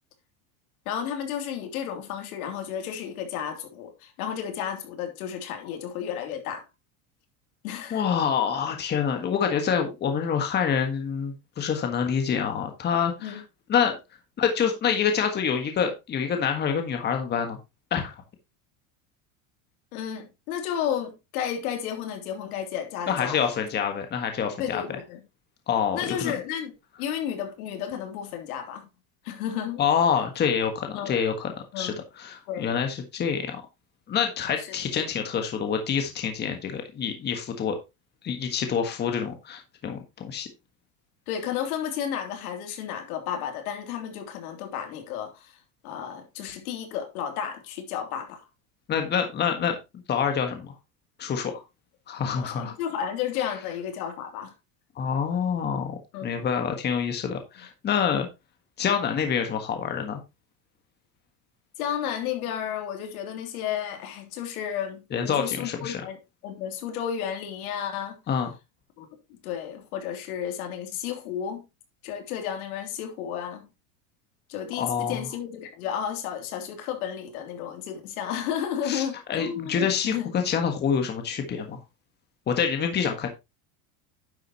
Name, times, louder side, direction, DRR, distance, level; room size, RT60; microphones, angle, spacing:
voice 1, 0.8-6.7 7.6-8.0 13.2-13.4 19.9-23.5 24.6-25.2 25.9-26.7 27.0-28.9 29.2-29.8 30.9-31.2 31.7-32.0 32.5-32.7 34.6-34.7 41.3-45.6 45.8-48.4 52.2-54.5 56.1-56.3 61.8-66.2 66.4-68.2 69.0-69.1 69.4-71.6 72.0-73.7 74.5-80.3, left 9 dB, 85° left, 3.2 m, -32 dB
voice 2, 7.9-13.4 13.7-13.9 14.4-17.6 17.9-18.1 23.1-24.8 25.7-26.4 29.8-33.6 34.1-37.8 38.2-40.5 48.9-49.7 50.1-50.7 51.2-51.6 52.1-52.7 55.0-58.3 58.8-60.2 65.1-66.0 68.3-68.5 74.8-75.3 78.8-81.8 82.5-83.3, left 7 dB, 25° left, 1.5 m, -26 dB
10.5 x 7.6 x 3.0 m
supercardioid pair, 155°, 42 cm